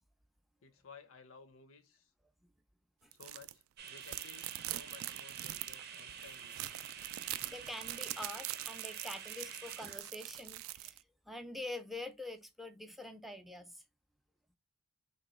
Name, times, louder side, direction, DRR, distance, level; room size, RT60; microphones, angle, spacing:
voice 1, 0.6-2.1 3.1-6.6, left 5 dB, 85° left, 0.7 m, -57 dB
sound 1, 3.1-3.5 3.9-11.0, right 15 dB, 85° right, 0.3 m, -43 dB
sound 2, 3.8-10.0, right 7 dB, 50° right, 0.6 m, -49 dB
voice 2, 7.3-13.8, left 2 dB, ahead, 0.5 m, -46 dB
3.1 x 3.0 x 4.2 m
head